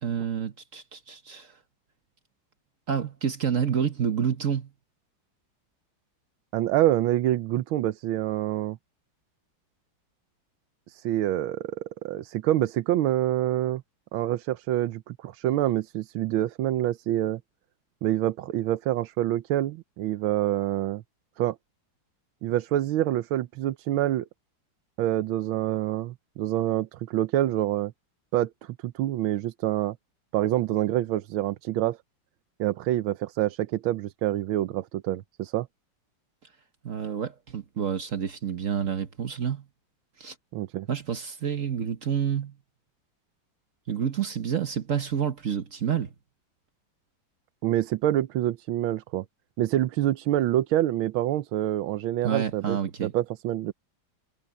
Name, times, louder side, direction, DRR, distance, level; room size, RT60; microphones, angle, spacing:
voice 1, 0.0-1.5 2.9-4.7 36.8-39.6 40.2-40.3 40.9-42.5 43.9-46.1 52.2-53.1, right 8 dB, 45° right, 1.2 m, -28 dB
voice 2, 6.5-8.8 10.9-13.8 14.1-17.4 18.0-21.0 21.4-21.6 22.4-24.2 25.0-27.9 28.3-30.0 30.3-32.0 32.6-35.7 40.5-40.9 47.6-49.2 49.6-53.7, right 13 dB, 85° right, 1.5 m, -26 dB
omnidirectional pair, 2.2 m